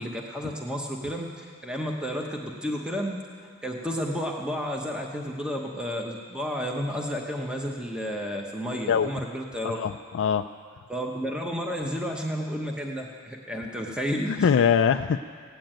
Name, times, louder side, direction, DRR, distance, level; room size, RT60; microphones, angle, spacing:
voice 1, 0.0-3.2 3.6-9.8 10.9-14.5, equal, 5° right, 0 dB, 0.9 m, -31 dB
voice 2, 9.7-10.4 14.3-15.2, left 7 dB, 55° left, 6 dB, 0.3 m, -22 dB
16.5 x 9.2 x 8.9 m, 2.2 s
head